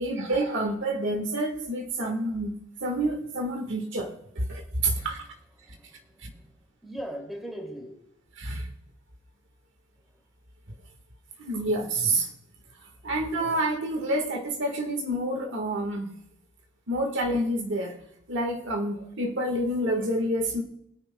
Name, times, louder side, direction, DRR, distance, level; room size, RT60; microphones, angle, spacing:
voice 1, 0.0-2.5 2.8-5.2 6.2-6.3 8.3-8.7 11.4-12.3 13.0-16.1 16.9-18.0 18.3-20.6, right 1 dB, 60° right, 1.5 m, -28 dB
voice 2, 5.6-6.5 6.8-8.0, equal, ahead, 2.5 m, -40 dB
21.0 x 9.7 x 2.2 m
head